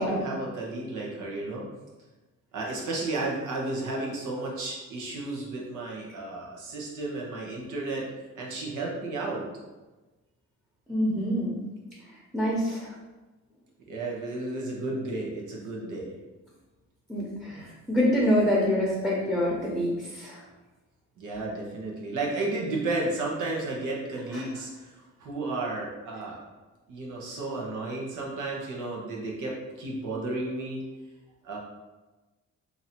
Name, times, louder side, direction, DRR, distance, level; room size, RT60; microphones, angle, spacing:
voice 1, 0.0-1.6 2.5-8.1 8.3-9.4 13.9-16.1 21.2-26.5 26.9-30.8 31.4-31.6, right 2 dB, 85° right, -3 dB, 1.1 m, -33 dB
voice 2, 10.9-11.6 12.3-12.9 17.1-20.4 24.3-24.4, equal, 5° right, -6 dB, 0.9 m, -26 dB
2.9 x 2.7 x 4.4 m, 1.2 s
cardioid pair, 90°, 30 cm